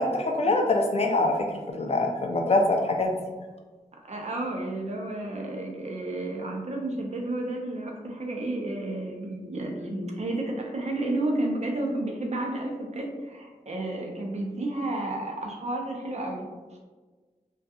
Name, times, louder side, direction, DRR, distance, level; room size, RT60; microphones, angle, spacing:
voice 1, 0.0-3.2, left 2 dB, 50° left, 2 dB, 0.4 m, -24 dB
voice 2, 4.0-16.5, right 2 dB, 55° right, 1 dB, 0.5 m, -31 dB
2.7 x 2.3 x 2.3 m, 1.3 s
wide cardioid pair, 85°, 14 cm